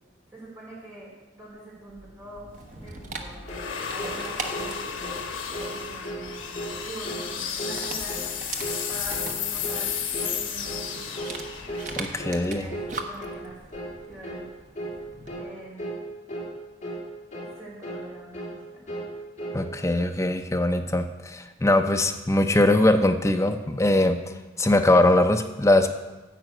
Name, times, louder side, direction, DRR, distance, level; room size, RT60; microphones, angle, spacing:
voice 1, 0.3-2.5 2.8-3.4 3.9-5.1 5.6-8.2 8.9-11.1 12.3-13.6 14.1-14.5 15.4-15.9 17.5-18.9, right 1 dB, 15° right, -6 dB, 3.7 m, -44 dB
sound 1, 2.0-13.2, left 7 dB, 85° left, 1.2 m, -34 dB
Dog, 2.5-15.4, right 3 dB, 40° right, 0.9 m, -41 dB
sound 2, 3.5-3.7 4.0-4.2 4.5-4.7 5.0-5.2 5.5-5.8 6.0-6.3 6.5-6.8 7.0-7.3 7.6-7.8 8.1-8.3 8.6-8.8 9.1-9.3 9.6-9.9 10.1-10.4 10.6-10.9 11.1-11.4 11.7-11.9 12.2-12.4 12.7-12.9 13.2-13.4 13.7-13.9 14.2-14.5 14.7-15.0 15.3-15.5 15.8-16.0 16.3-16.5 16.8-17.0 17.3-17.5 17.8-18.1 18.3-18.6 18.9-19.1 19.4-19.6, right 1 dB, 40° left, 2.1 m, -35 dB
voice 2, 11.9-12.7 19.5-24.2 24.6-25.9, left 1 dB, 15° left, 5 dB, 0.5 m, -21 dB
9.0 x 5.3 x 7.7 m, 1.1 s
head